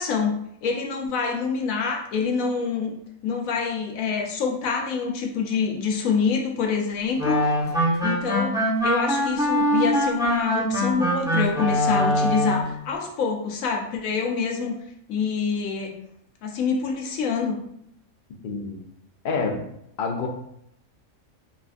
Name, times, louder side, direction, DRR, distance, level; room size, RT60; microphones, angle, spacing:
voice 1, 0.0-2.9 3.2-7.5 8.0-14.7 15.1-15.9 16.4-17.6, left 5 dB, 80° left, 1 dB, 1.0 m, -26 dB
sound 1, 7.2-12.7, equal, 5° right, 0.9 m, -23 dB
voice 2, 18.4-18.8 19.2-19.6 20.0-20.3, left 4 dB, 65° left, 2 dB, 0.5 m, -27 dB
3.3 x 2.3 x 2.5 m, 0.74 s
omnidirectional pair, 1.4 m